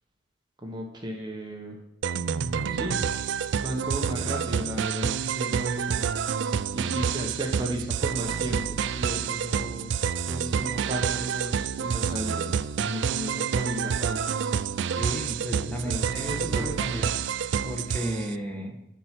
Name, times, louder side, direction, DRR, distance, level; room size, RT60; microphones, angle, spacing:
voice 1, 0.6-1.8 2.7-3.0 3.6-5.9 6.7-9.9 10.3-14.4 15.6-17.1, right 1 dB, 20° right, 1 dB, 1.0 m, -35 dB
sound 1, 2.0-18.3, right 7 dB, 60° right, 0.3 m, -28 dB
voice 2, 14.9-17.2 17.6-18.8, right 1 dB, 5° left, 1 dB, 1.2 m, -34 dB
10.5 x 4.6 x 5.9 m, 0.91 s
head